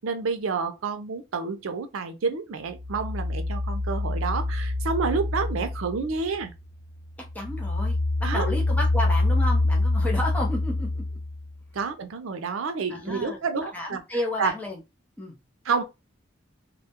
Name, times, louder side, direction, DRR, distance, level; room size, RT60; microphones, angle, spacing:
voice 1, 0.0-6.5 8.2-8.5 11.7-14.0 14.4-14.5 15.6-15.8, right 4 dB, 90° right, 0.5 m, -29 dB
sound 1, 2.7-6.6 7.0-11.5, left 2 dB, 55° left, 1.0 m, -26 dB
voice 2, 7.3-11.0 12.9-13.4 13.7-14.8 15.2-15.3, left 1 dB, 10° left, 0.6 m, -31 dB
2.2 x 2.0 x 2.8 m
head